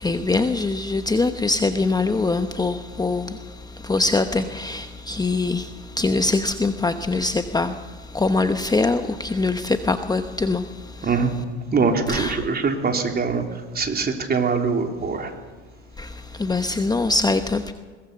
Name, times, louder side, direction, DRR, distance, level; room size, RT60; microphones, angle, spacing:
voice 1, 0.0-3.4 3.8-5.7 6.0-7.8 8.1-10.6 11.0-11.1 12.1-12.4 16.0-17.7, left 3 dB, 10° left, 9 dB, 1.0 m, -23 dB
voice 2, 11.0-11.3 11.7-15.3, right 5 dB, 25° right, 4 dB, 3.5 m, -23 dB
22.0 x 19.0 x 6.9 m, 1.5 s
hypercardioid pair, 90°, 35 cm